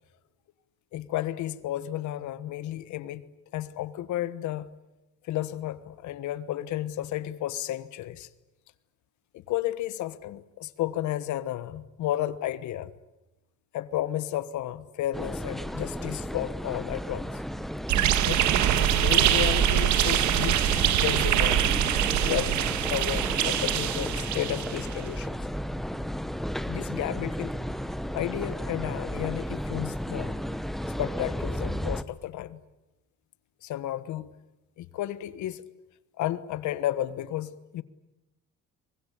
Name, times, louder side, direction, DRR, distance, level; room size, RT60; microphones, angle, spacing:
voice 1, 0.9-3.2 3.5-4.7 5.3-8.3 9.3-12.9 13.7-17.3 18.2-18.4 18.9-21.6 22.2-22.6 22.9-25.4 26.6-27.5 28.1-30.3 31.0-32.6 33.6-34.3 34.8-35.6 36.2-37.8, left 13 dB, 75° left, 1.4 m, -32 dB
sound 1, 15.1-32.0, equal, ahead, 1.0 m, -33 dB
sound 2, 17.9-24.9, right 11 dB, 75° right, 1.7 m, -24 dB
24.0 x 21.0 x 10.0 m
cardioid pair, 105°, 29 cm